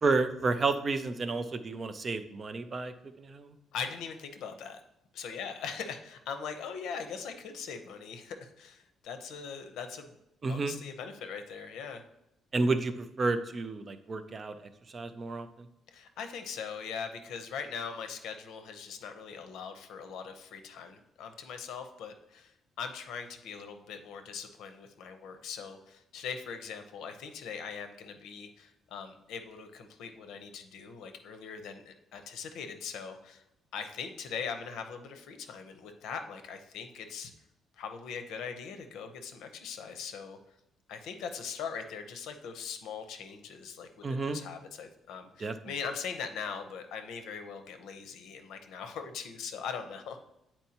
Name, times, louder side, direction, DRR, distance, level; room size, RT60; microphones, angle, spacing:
voice 1, 0.0-2.9 3.2-3.5 10.4-10.7 12.5-14.5 14.9-15.5 44.0-44.4 45.4-45.5, right 3 dB, 25° right, 9 dB, 0.4 m, -30 dB
voice 2, 3.7-4.8 5.1-10.1 10.5-12.0 15.9-33.4 33.7-37.3 37.8-40.4 40.9-50.2, left 6 dB, 80° left, 7 dB, 0.7 m, -41 dB
9.0 x 4.4 x 2.8 m, 0.84 s
cardioid pair, 175°, 0 cm